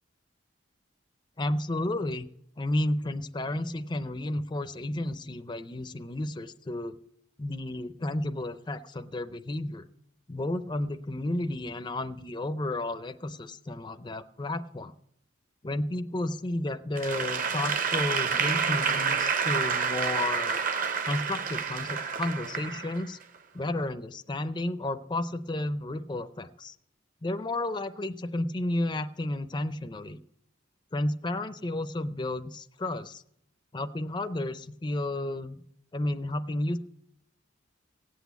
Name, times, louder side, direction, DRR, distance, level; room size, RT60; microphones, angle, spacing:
voice 1, 1.4-2.2 2.6-7.0 7.4-9.8 10.3-14.9 15.6-20.6 21.1-23.2 23.5-26.7 27.2-30.2 30.9-33.2 33.7-35.6 35.9-36.8, left 1 dB, 20° left, 9 dB, 0.5 m, -32 dB
Applause / Crowd, 17.0-23.2, right 6 dB, 40° right, 0.7 m, -29 dB
17.0 x 8.2 x 8.1 m, 0.73 s
head